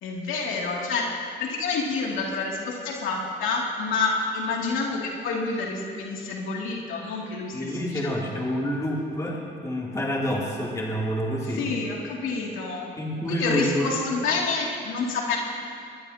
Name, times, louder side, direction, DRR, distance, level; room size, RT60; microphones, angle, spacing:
voice 1, 0.0-8.2 11.5-12.9 13.3-15.4, left 4 dB, 85° left, -2 dB, 2.7 m, -28 dB
voice 2, 7.5-11.7 13.0-13.9, equal, 15° left, -4 dB, 3.0 m, -28 dB
21.5 x 20.0 x 2.9 m, 2.3 s
cardioid pair, 90°, 20 cm